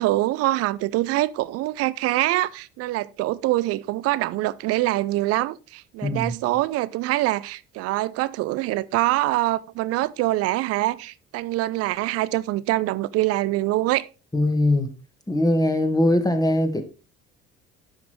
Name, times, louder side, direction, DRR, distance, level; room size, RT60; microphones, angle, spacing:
voice 1, 0.0-14.1, right 17 dB, 55° right, 0.5 m, -24 dB
voice 2, 6.0-6.3 14.3-14.9 15.3-16.8, left 1 dB, 10° left, 1.7 m, -21 dB
10.5 x 5.9 x 3.2 m
hypercardioid pair, 55°, 29 cm